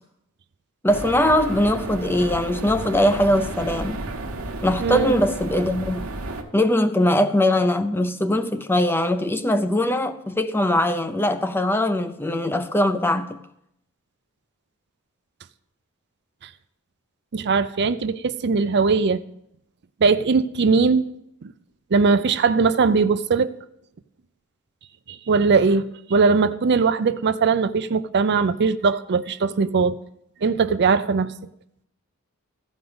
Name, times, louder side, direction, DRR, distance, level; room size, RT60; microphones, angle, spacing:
voice 1, 0.8-4.0 4.6-6.1 6.5-13.4, left 1 dB, 10° left, 0.5 m, -21 dB
sound 1, 0.9-6.4, right 2 dB, 65° right, 1.2 m, -32 dB
voice 2, 4.8-5.1 17.3-19.2 20.0-21.1 21.4-21.5 21.9-23.5 25.1-30.0 30.4-31.3, right 4 dB, 50° right, 0.5 m, -20 dB
14.5 x 5.2 x 7.8 m
head